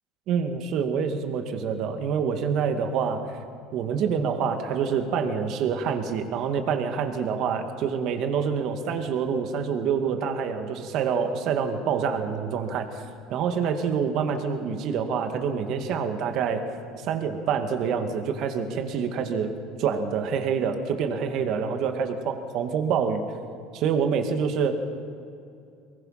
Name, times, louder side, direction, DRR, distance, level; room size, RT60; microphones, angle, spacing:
voice 1, 0.3-3.3 3.7-13.0 13.3-16.7 17.0-19.5 19.8-23.3 23.7-24.8, right 6 dB, 55° right, 6 dB, 2.1 m, -26 dB
23.5 x 20.0 x 5.8 m, 2.5 s
supercardioid pair, 115°, 0 cm